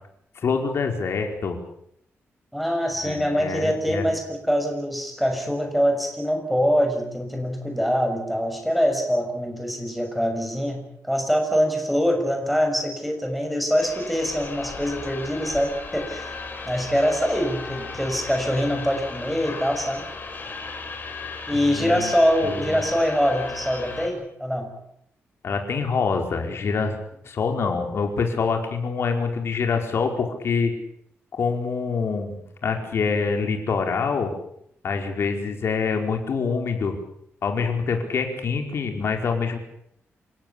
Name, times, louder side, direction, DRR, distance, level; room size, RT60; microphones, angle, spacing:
voice 1, 0.4-1.5 3.0-4.0 21.5-22.1 22.4-22.8 25.4-27.0 27.2-30.7 31.4-34.3 34.8-37.0 37.4-39.6, left 5 dB, 60° left, 4 dB, 4.9 m, -25 dB
voice 2, 2.5-16.3 16.7-20.0 21.5-24.7, equal, ahead, 4 dB, 6.6 m, -24 dB
sound 1, 13.8-24.1, left 4 dB, 40° left, 6.3 m, -36 dB
28.5 x 16.5 x 8.7 m, 0.74 s
wide cardioid pair, 130°, 5 cm